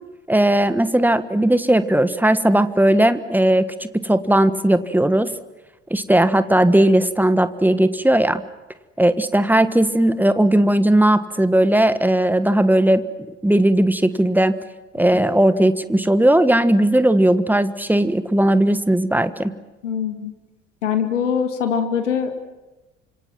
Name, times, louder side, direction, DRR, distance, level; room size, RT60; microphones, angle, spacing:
voice 1, 0.3-5.3 5.9-8.4 9.0-13.0 13.4-14.5 14.9-19.5, right 1 dB, 5° right, 12 dB, 1.4 m, -17 dB
voice 2, 19.8-20.3 20.8-22.5, left 7 dB, 75° left, 7 dB, 2.0 m, -23 dB
29.5 x 26.0 x 6.1 m, 1.1 s
figure-of-eight pair, 55°, 37 cm